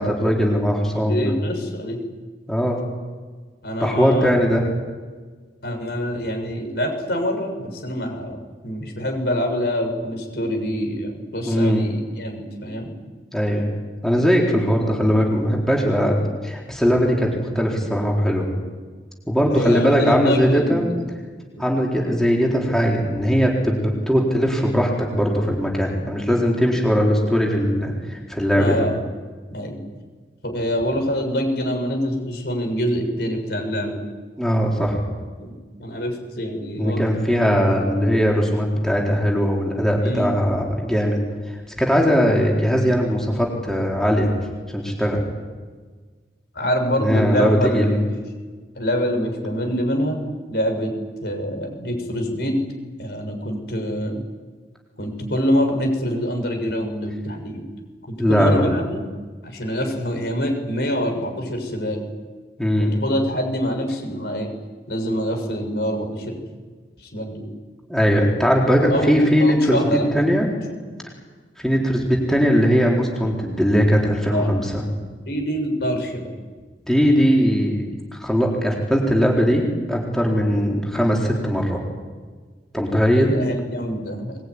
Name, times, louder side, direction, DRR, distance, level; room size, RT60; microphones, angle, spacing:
voice 1, 0.0-1.3 2.5-2.8 3.8-4.6 11.5-11.8 13.3-13.7 14.0-17.3 17.5-18.5 19.3-20.9 21.6-28.9 34.4-35.0 36.8-41.2 41.8-44.3 44.7-45.2 47.0-48.0 58.2-58.7 62.6-62.9 67.9-69.8 70.1-70.5 71.6-74.8 76.9-77.9 78.2-81.8 82.7-83.3, equal, 5° left, -2 dB, 4.1 m, -19 dB
voice 2, 1.1-2.0 3.6-4.3 5.6-12.9 19.5-21.2 21.6-21.7 28.6-28.9 29.5-29.8 30.4-34.0 35.4-37.0 40.0-40.4 46.5-47.9 48.8-50.2 50.5-50.9 51.2-52.6 53.0-54.2 55.0-57.6 58.1-59.0 59.4-62.0 62.8-64.5 64.9-66.4 67.1-67.5 68.4-68.5 68.9-70.3 74.3-74.7 75.3-76.3 83.1-84.4, equal, 65° left, 3 dB, 6.6 m, -25 dB
22.5 x 21.5 x 9.8 m, 1.4 s
head